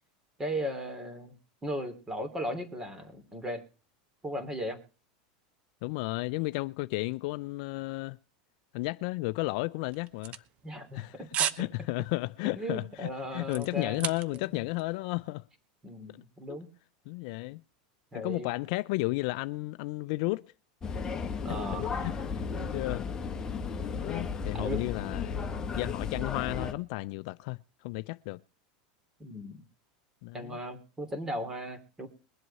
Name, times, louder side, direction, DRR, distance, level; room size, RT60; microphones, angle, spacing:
voice 1, 0.4-1.3 1.6-3.6 4.2-4.8 10.6-11.1 12.5-14.4 15.8-16.7 18.1-18.5 21.4-21.9 24.5-24.9 29.2-29.6 30.3-32.1, equal, 15° right, 2.9 m, -36 dB
voice 2, 5.8-8.2 8.7-10.4 10.9-11.2 11.6-15.4 16.5-16.6 17.1-17.6 18.1-20.5 21.5-23.1 23.8-25.4 25.7-27.6 27.8-28.4 30.2-30.6, left 22 dB, 60° left, 0.5 m, -33 dB
sound 1, 9.9-11.0 11.3-11.7 12.0-12.3 12.7-14.5 14.8-14.9, right 9 dB, 35° right, 0.9 m, -33 dB
sound 2, 20.8-26.7, left 5 dB, 15° left, 1.7 m, -34 dB
22.5 x 7.9 x 4.2 m
supercardioid pair, 150°, 4 cm